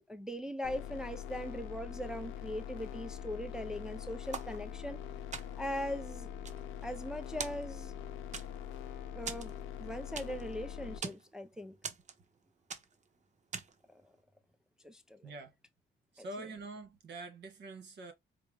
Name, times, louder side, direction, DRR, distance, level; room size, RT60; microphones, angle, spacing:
voice 1, 0.0-5.0 5.6-6.3 6.8-7.9 9.1-9.5 9.8-11.8 14.8-15.3, equal, 5° right, 0.4 m, -40 dB
sound 1, 0.6-11.0, left 9 dB, 90° left, 0.6 m, -43 dB
sound 2, 4.3-5.0 5.3-5.8 6.2-7.1 7.4-8.0 8.3-8.8 9.3-10.5 10.8-11.3 11.8-12.4 12.7-13.1 13.5-13.9, right 5 dB, 35° right, 0.8 m, -43 dB
voice 2, 15.2-15.5 16.1-18.1, right 2 dB, 60° right, 1.5 m, -45 dB
4.4 x 2.0 x 3.3 m
cardioid pair, 90°, 20 cm